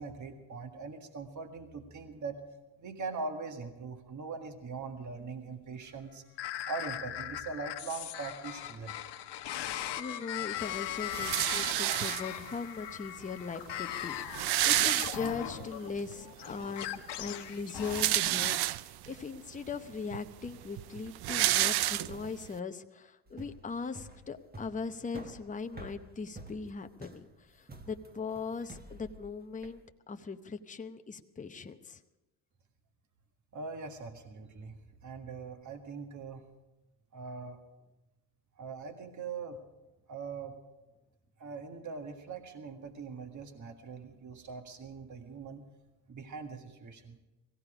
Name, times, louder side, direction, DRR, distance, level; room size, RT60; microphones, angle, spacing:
voice 1, 0.0-2.4 2.8-6.2 6.7-9.0 33.5-36.4 37.1-37.6 38.6-39.6 40.1-40.6 41.4-45.6 46.1-47.2, right 4 dB, 45° right, 5 dB, 1.7 m, -41 dB
sound 1, 6.4-18.3, left 12 dB, 75° left, 1.1 m, -39 dB
voice 2, 9.5-32.0, left 5 dB, 20° left, 7 dB, 0.8 m, -40 dB
sound 2, 11.1-12.6 13.4-13.5 13.7-13.8 14.1-15.7 16.1-16.2 17.6-19.1 19.7-19.8 20.1-22.5, right 14 dB, 65° right, 0.5 m, -29 dB
sound 3, 23.3-29.8, right 2 dB, 20° right, 1.5 m, -49 dB
17.5 x 15.5 x 5.0 m, 1.1 s
cardioid pair, 95°, 41 cm